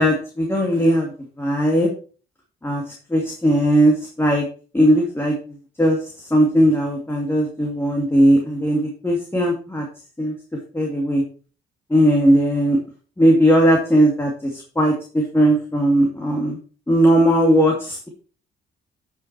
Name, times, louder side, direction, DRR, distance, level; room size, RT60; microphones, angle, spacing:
voice 1, 0.0-1.9 2.6-4.5 4.7-5.3 5.8-9.8 10.2-10.3 10.7-11.2 11.9-12.8 13.2-16.6 16.9-18.1, equal, 10° left, 0 dB, 2.4 m, -18 dB
9.2 x 5.9 x 4.6 m, 0.38 s
cardioid pair, 90°, 20 cm